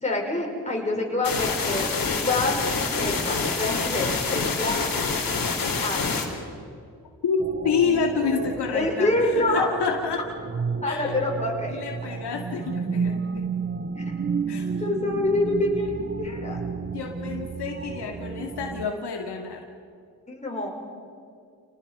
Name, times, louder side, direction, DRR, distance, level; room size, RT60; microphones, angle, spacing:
voice 1, 0.0-4.9 5.8-6.3 8.7-9.7 10.8-11.8 14.0-14.1 14.8-16.6 20.3-20.7, left 2 dB, 15° left, -1 dB, 6.2 m, -27 dB
sound 1, 1.2-6.2, left 4 dB, 55° left, 4.2 m, -26 dB
sound 2, 7.4-18.9, right 5 dB, 25° right, 0.8 m, -32 dB
voice 2, 7.6-10.2 10.9-11.2 11.7-13.5 14.5-14.7 15.0-15.1 16.8-19.6, left 5 dB, 75° left, 1 dB, 2.4 m, -28 dB
28.5 x 19.0 x 5.6 m, 2.3 s
cardioid pair, 70°, 40 cm